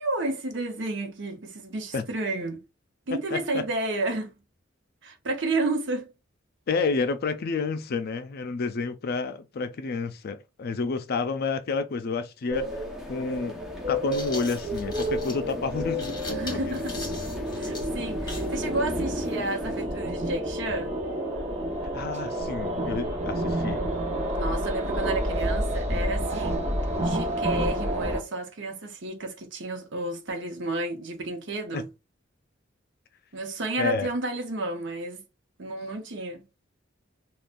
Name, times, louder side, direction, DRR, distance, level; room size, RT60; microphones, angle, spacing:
voice 1, 0.0-2.6 3.1-4.3 5.0-6.1 16.3-17.0 17.5-20.9 24.4-26.7 27.0-31.9 33.3-35.2 35.6-36.4, right 2 dB, 65° right, 0.9 m, -31 dB
voice 2, 3.3-3.6 6.7-13.6 13.9-16.8 21.9-23.8 31.7-31.8 33.8-34.1, left 4 dB, 50° left, 0.4 m, -30 dB
sound 1, 12.5-19.8, equal, ahead, 0.7 m, -44 dB
sound 2, 12.5-28.2, equal, 35° right, 0.9 m, -30 dB
sound 3, 13.8-18.6, left 2 dB, 25° left, 2.0 m, -41 dB
3.6 x 2.3 x 2.5 m
head